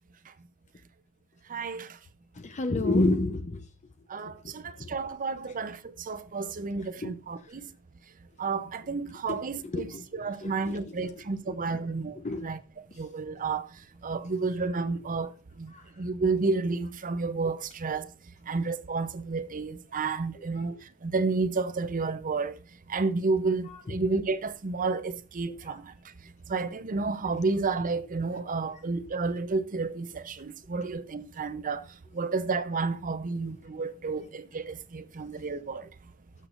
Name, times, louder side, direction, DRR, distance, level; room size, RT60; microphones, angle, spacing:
voice 1, 1.5-2.0 4.1-7.7 8.4-9.9 10.1-12.6 12.9-18.1 18.4-22.6 22.9-25.9 26.5-31.9 32.1-35.9, right 4 dB, 40° right, 0.6 m, -31 dB
voice 2, 2.4-3.6 4.4-5.0 6.8-7.2 9.3-10.0 10.4-11.6 12.2-12.5 15.7-15.8 20.4-20.6 23.7-23.8 25.7-25.8, left 2 dB, 35° left, 0.7 m, -31 dB
18.0 x 6.7 x 2.5 m
head